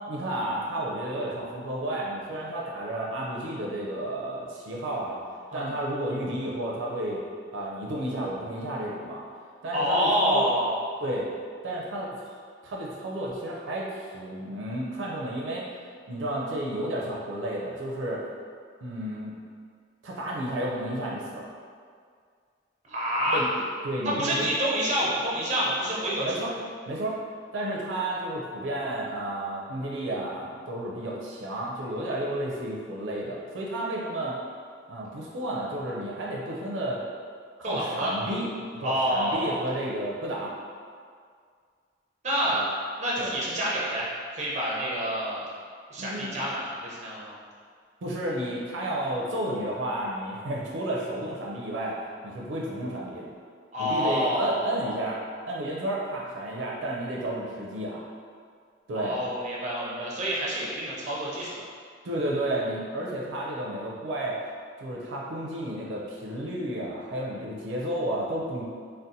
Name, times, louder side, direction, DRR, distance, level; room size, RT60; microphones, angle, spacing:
voice 1, 0.0-5.2 5.5-7.2 7.5-9.2 9.6-10.5 11.0-11.3 11.6-15.6 16.1-18.2 18.8-19.3 20.0-21.5 23.3-24.5 26.2-26.5 26.9-27.2 27.5-34.4 34.9-37.0 37.6-38.5 38.8-40.5 42.5-42.7 43.2-43.3 46.0-46.4 48.0-52.0 52.2-53.3 53.8-58.0 58.9-59.2 62.0-64.4 64.8-68.6, right 1 dB, 85° right, -4 dB, 0.4 m, -32 dB
voice 2, 9.7-10.8 22.9-23.4 24.0-26.4 37.6-38.1 38.8-39.5 42.2-42.6 43.0-44.1 44.3-45.5 45.9-47.4 53.7-55.0 58.9-61.5, equal, 40° right, -5 dB, 0.7 m, -27 dB
3.9 x 2.1 x 2.6 m, 2.1 s
head